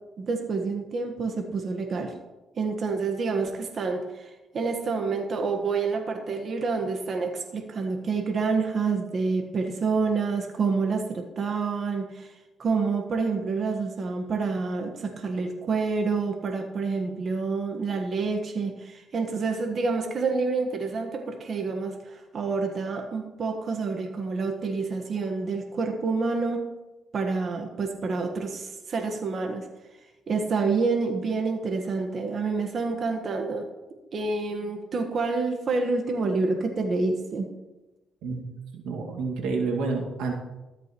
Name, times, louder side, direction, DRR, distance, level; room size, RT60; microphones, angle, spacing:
voice 1, 0.2-2.2 2.6-12.3 12.6-26.6 27.1-29.7 30.3-33.7 34.1-37.5, right 4 dB, 50° right, 4 dB, 1.3 m, -28 dB
voice 2, 38.7-40.3, right 4 dB, 90° right, 0 dB, 2.0 m, -29 dB
13.5 x 11.5 x 3.0 m, 1.1 s
cardioid pair, 90°, 0 cm